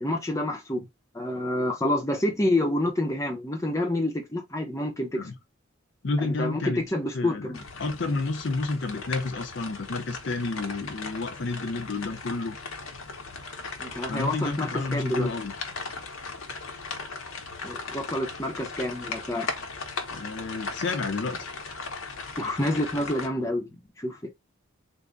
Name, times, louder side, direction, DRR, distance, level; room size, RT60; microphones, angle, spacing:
voice 1, 0.0-0.9 1.1-5.3 6.2-7.6 13.8-15.3 17.6-19.5 22.4-24.3, left 1 dB, 15° left, 0.6 m, -28 dB
voice 2, 6.0-6.8 7.1-12.6 14.1-15.5 20.1-21.5, left 3 dB, 55° left, 0.6 m, -30 dB
sound 1, 7.5-23.3, left 4 dB, 85° left, 0.8 m, -37 dB
3.5 x 2.0 x 3.7 m
head